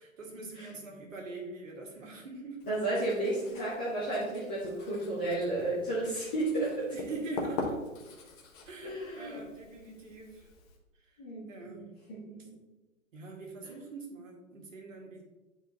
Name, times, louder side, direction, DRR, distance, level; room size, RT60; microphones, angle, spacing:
voice 1, 0.0-2.7 6.9-7.8 8.7-10.5 11.0-11.2 11.5-11.9 13.1-15.2, right 3 dB, 65° right, 0 dB, 1.9 m, -43 dB
Writing, 2.6-10.8, left 3 dB, 30° left, 1.1 m, -43 dB
voice 2, 2.7-7.2 8.8-9.4 11.2-12.5, right 2 dB, 10° left, -9 dB, 0.3 m, -33 dB
10.5 x 4.5 x 2.8 m, 1.1 s
figure-of-eight pair, 115°, 41 cm